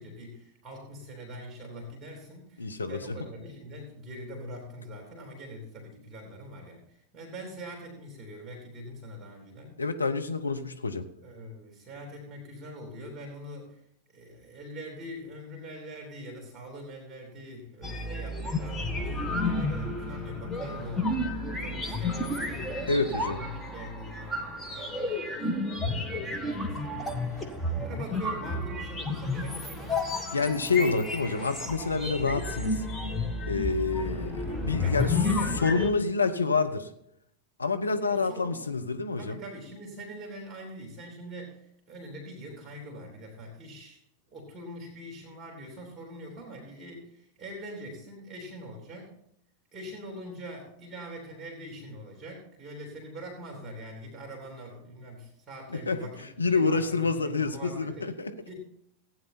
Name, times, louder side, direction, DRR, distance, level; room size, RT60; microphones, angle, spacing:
voice 1, 0.0-9.8 11.2-13.8 14.1-22.9 23.2-30.2 34.8-35.6 38.0-38.6 39.2-44.0 44.3-49.2 49.7-56.3 56.5-58.1 58.5-58.6, equal, 20° right, 0 dB, 3.4 m, -43 dB
voice 2, 2.6-3.2 9.8-11.1 22.9-23.4 30.3-32.8 33.4-35.2 35.6-36.9 37.6-39.4 55.7-56.0 56.4-58.3, left 4 dB, 80° left, 6 dB, 0.9 m, -28 dB
sound 1, 17.8-35.9, left 2 dB, 5° left, 1.5 m, -31 dB
15.5 x 9.2 x 4.3 m, 0.75 s
figure-of-eight pair, 90°, 0 cm